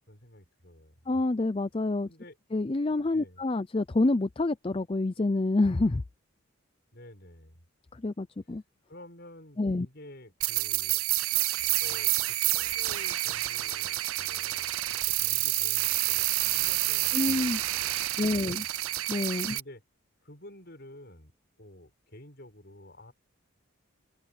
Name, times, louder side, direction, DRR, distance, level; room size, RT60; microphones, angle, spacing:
voice 1, 0.0-1.0 2.1-2.4 3.1-3.4 6.9-7.6 8.9-11.0 11.8-18.7 19.5-19.8 20.2-21.3 21.6-23.1, left 1 dB, 50° left, 7.0 m, -51 dB
voice 2, 1.1-2.1 2.5-6.0 7.9-8.6 9.6-9.9 17.1-17.6 18.2-18.7 19.1-19.6, left 2 dB, 25° left, 0.5 m, -27 dB
sound 1, 10.4-19.6, right 17 dB, 85° right, 0.6 m, -28 dB
head